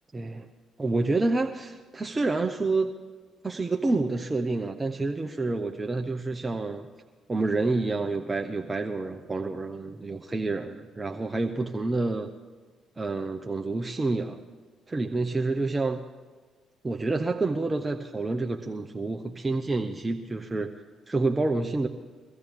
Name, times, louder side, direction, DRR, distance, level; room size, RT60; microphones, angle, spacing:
voice 1, 0.1-0.5 0.8-2.9 3.4-6.9 7.3-12.3 13.0-14.4 14.9-16.0 16.8-20.7 21.1-21.9, right 3 dB, 25° right, 4 dB, 0.9 m, -28 dB
23.5 x 15.0 x 3.7 m, 1.4 s
hypercardioid pair, 45°, 0 cm